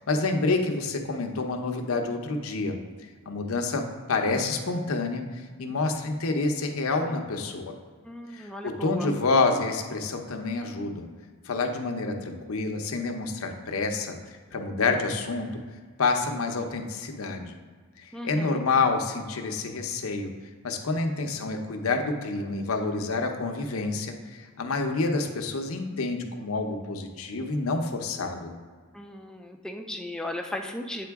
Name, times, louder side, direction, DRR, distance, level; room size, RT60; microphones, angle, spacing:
voice 1, 0.0-2.8 3.3-3.8 4.1-7.7 8.3-11.1 11.4-14.2 14.5-15.5 16.0-17.6 18.0-20.3 20.6-28.5, left 3 dB, 80° left, 4 dB, 0.7 m, -28 dB
voice 2, 8.0-9.1 18.1-18.6 28.9-31.1, left 1 dB, 5° left, 3 dB, 0.4 m, -36 dB
8.5 x 3.8 x 3.5 m, 1.5 s
head